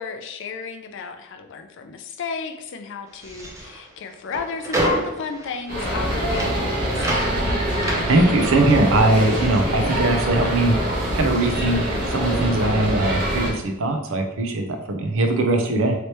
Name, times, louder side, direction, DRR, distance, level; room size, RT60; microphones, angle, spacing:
voice 1, 0.0-7.5, left 5 dB, 55° left, 7 dB, 0.4 m, -33 dB
sound 1, 3.1-10.6 10.8-12.3, right 1 dB, 15° right, 0.5 m, -31 dB
sound 2, 5.7-13.5, equal, 40° right, 1.0 m, -24 dB
voice 2, 8.1-10.9 11.1-11.8 12.1-15.9, right 2 dB, 65° right, 4 dB, 0.6 m, -20 dB
3.2 x 2.9 x 2.9 m, 0.91 s
head